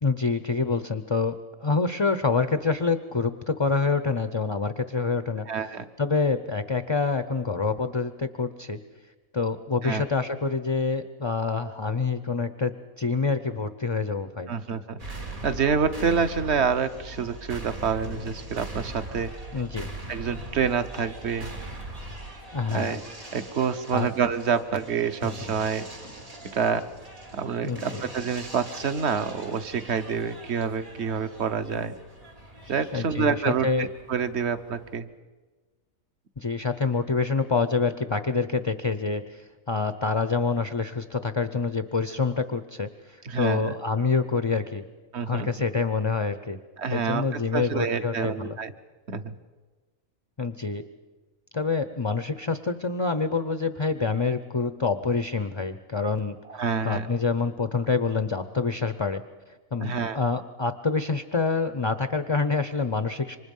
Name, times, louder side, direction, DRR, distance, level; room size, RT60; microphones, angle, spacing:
voice 1, 0.0-5.7 6.0-8.8 9.3-14.5 19.5-19.9 22.5-23.0 23.9-24.1 27.6-28.0 32.9-33.9 36.4-44.8 45.3-46.6 46.9-48.6 50.4-50.8 51.5-59.2 59.7-63.4, left 4 dB, 30° left, 10 dB, 0.5 m, -27 dB
voice 2, 5.5-5.9 9.8-10.0 14.5-19.3 20.1-21.5 22.7-23.0 23.3-25.8 26.5-26.9 27.3-31.9 32.7-35.1 43.2-43.7 45.1-45.5 46.8-48.7 49.1-49.3 56.5-57.1 59.8-60.2, right 6 dB, 55° right, 11 dB, 1.2 m, -27 dB
sound 1, 15.0-35.0, right 1 dB, 75° right, 3.9 m, -41 dB
27.5 x 24.5 x 5.5 m, 1.3 s
omnidirectional pair, 1.5 m